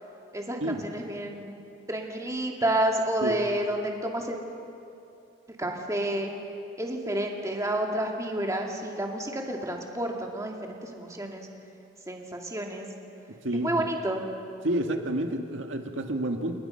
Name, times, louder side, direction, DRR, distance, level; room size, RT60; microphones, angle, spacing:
voice 1, 0.3-1.6 1.9-4.4 5.6-6.3 6.8-11.5 12.1-12.9 13.5-14.2, right 1 dB, 15° right, 1 dB, 2.3 m, -30 dB
voice 2, 13.4-13.9 14.6-16.6, right 1 dB, 80° right, 4 dB, 1.8 m, -29 dB
30.0 x 19.5 x 5.7 m, 2.6 s
head